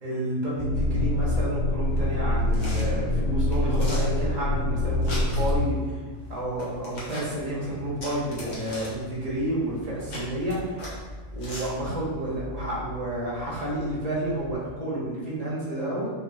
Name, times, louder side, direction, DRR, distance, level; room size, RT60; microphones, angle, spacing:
voice 1, 0.0-5.8 6.3-10.9 11.3-16.1, right 1 dB, 35° right, -7 dB, 0.7 m, -30 dB
sound 1, 0.6-5.6, left 1 dB, 70° left, 1.2 m, -25 dB
sound 2, 1.8-14.7, left 1 dB, 40° left, 0.8 m, -41 dB
3.1 x 3.1 x 2.5 m, 1.4 s
omnidirectional pair, 1.7 m